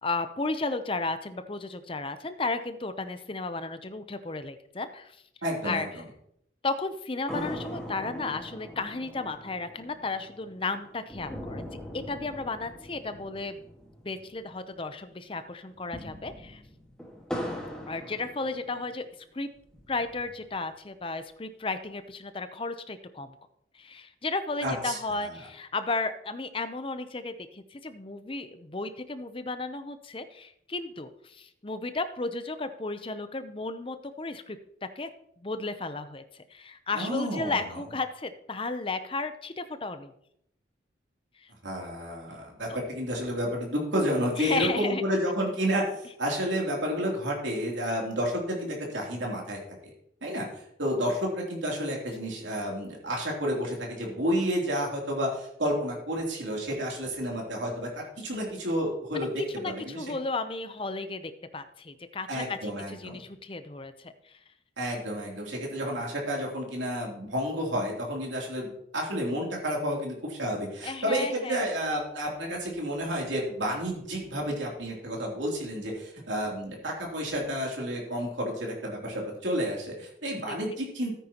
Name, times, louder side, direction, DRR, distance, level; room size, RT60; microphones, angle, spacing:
voice 1, 0.0-5.2 5.6-5.9 6.6-11.7 11.9-13.6 14.0-16.6 17.9-19.1 19.3-19.5 19.9-23.4 23.7-34.6 35.0-35.1 35.4-40.1 42.7-42.8 44.4-45.0 59.1-64.4 70.8-71.6 80.5-80.8, left 3 dB, 30° left, 10 dB, 0.6 m, -34 dB
voice 2, 5.4-6.0 24.6-25.3 36.9-37.8 41.6-49.6 50.2-60.0 62.3-63.2 64.8-81.1, equal, 80° right, -1 dB, 3.1 m, -31 dB
sound 1, 7.3-14.9 15.1-15.2 15.7-19.0 19.6-20.5, equal, 5° left, 1.6 m, -41 dB
13.5 x 9.3 x 2.9 m, 0.73 s
head